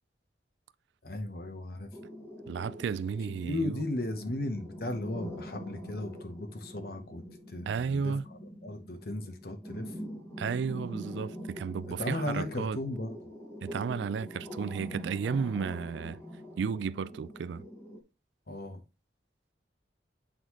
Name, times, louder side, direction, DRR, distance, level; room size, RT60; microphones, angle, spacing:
voice 1, 1.0-1.9 3.4-8.1 8.6-9.9 11.9-13.2 18.5-18.8, left 1 dB, 55° left, 0.9 m, -36 dB
sound 1, 1.9-18.0, equal, 15° left, 1.0 m, -44 dB
voice 2, 2.5-3.8 7.7-8.2 10.4-12.8 13.6-16.2 16.6-17.7, right 6 dB, 80° right, 0.3 m, -33 dB
8.0 x 3.8 x 3.0 m
head